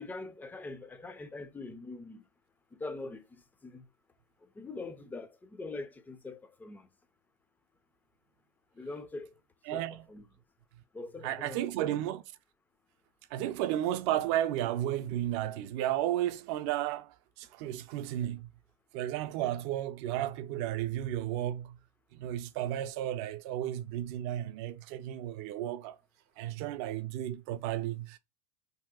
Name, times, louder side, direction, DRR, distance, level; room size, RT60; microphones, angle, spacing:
voice 1, 0.0-2.3 2.7-3.9 4.4-6.9 8.7-9.3 9.7-10.3 10.9-11.9, left 3 dB, 10° left, 0.3 m, -43 dB
voice 2, 9.7-10.0 11.2-12.2 13.3-18.5 18.9-21.8 22.1-26.0 26.4-28.2, right 12 dB, 55° right, 0.4 m, -33 dB
2.9 x 2.7 x 2.3 m
supercardioid pair, 120°, 17 cm